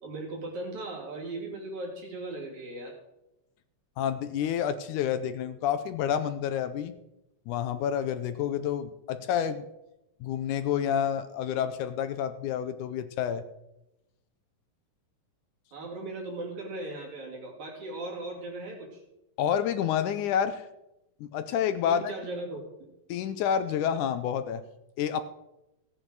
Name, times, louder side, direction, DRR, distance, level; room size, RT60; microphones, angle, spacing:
voice 1, 0.0-3.0 15.7-19.0 21.9-22.6, right 2 dB, 60° right, -2 dB, 4.3 m, -38 dB
voice 2, 4.0-6.9 7.5-9.7 10.2-13.4 19.4-20.6 21.2-22.0 23.1-24.6 25.0-25.2, left 9 dB, 80° left, 10 dB, 2.0 m, -29 dB
16.5 x 9.0 x 4.7 m, 0.91 s
omnidirectional pair, 3.8 m